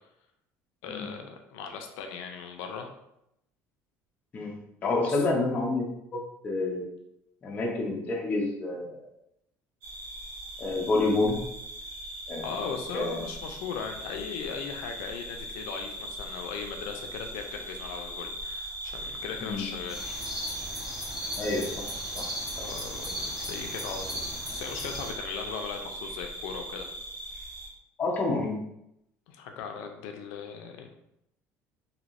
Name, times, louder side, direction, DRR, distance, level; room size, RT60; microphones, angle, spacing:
voice 1, 0.8-2.9 5.0-5.2 12.4-20.2 22.6-26.9 29.3-30.9, left 6 dB, 90° left, 4 dB, 0.4 m, -38 dB
voice 2, 4.8-5.9 6.1-6.9 7.4-9.0 10.6-11.4 12.3-12.4 12.9-13.2 19.4-19.7 21.4-21.8 22.1-22.2 22.6-22.7 28.0-28.6, left 2 dB, 25° left, -1 dB, 0.6 m, -28 dB
sound 1, 9.8-27.7, equal, 65° right, 1.0 m, -40 dB
sound 2, 19.9-25.1, equal, 5° right, 0.8 m, -37 dB
3.2 x 2.7 x 2.5 m, 0.81 s
cardioid pair, 165°, 6 cm